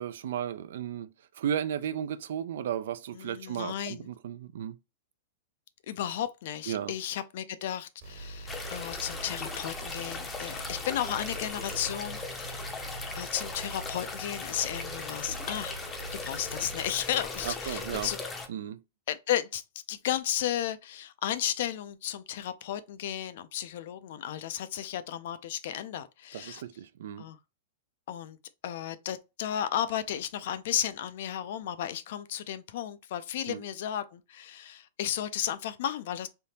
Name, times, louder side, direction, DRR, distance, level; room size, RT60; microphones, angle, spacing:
voice 1, 0.0-4.8 6.7-6.9 17.4-18.1 18.5-18.8 26.3-27.2 33.5-33.7, right 9 dB, 75° right, 0.4 m, -34 dB
voice 2, 3.1-4.1 5.9-12.7 13.1-15.7 16.1-18.2 19.1-19.6 19.9-26.6 27.2-27.4 28.1-28.4 28.6-36.3, left 11 dB, 65° left, 0.4 m, -34 dB
sound 1, 8.0-16.9, right 2 dB, 60° right, 1.3 m, -43 dB
sound 2, 8.5-18.5, left 3 dB, 15° left, 0.6 m, -39 dB
3.4 x 2.7 x 2.8 m
hypercardioid pair, 140°, 0 cm